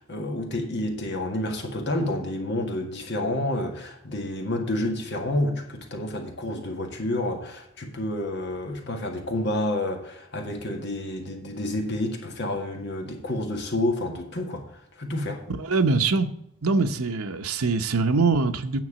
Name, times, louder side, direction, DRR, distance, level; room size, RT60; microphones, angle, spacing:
voice 1, 0.0-14.6 15.0-15.4, left 1 dB, 50° left, 1.8 m, -29 dB
voice 2, 15.7-16.3 16.6-18.8, right 4 dB, 85° right, 0.9 m, -23 dB
9.4 x 6.0 x 7.4 m
head